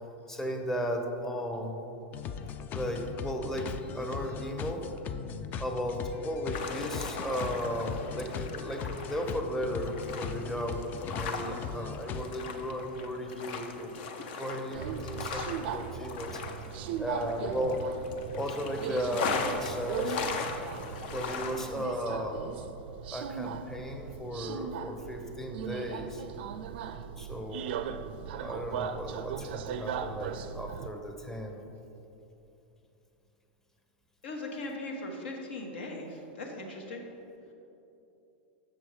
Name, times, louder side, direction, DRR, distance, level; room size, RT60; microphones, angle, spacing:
voice 1, 0.3-1.8 2.7-4.9 5.6-13.9 14.4-16.4 17.0-17.8 18.3-20.2 21.1-22.4 23.1-26.2 27.2-27.7 28.4-31.6, equal, 5° left, 3 dB, 0.7 m, -35 dB
sound 1, 2.1-12.3, left 6 dB, 30° left, 0.3 m, -39 dB
sound 2, 6.5-21.9, left 5 dB, 65° left, 0.7 m, -39 dB
Subway metro underground, 14.7-30.9, right 7 dB, 70° right, 0.4 m, -38 dB
voice 2, 34.2-37.0, left 2 dB, 80° left, 1 dB, 1.4 m, -39 dB
6.5 x 6.2 x 4.8 m, 2.9 s
supercardioid pair, 140°, 6 cm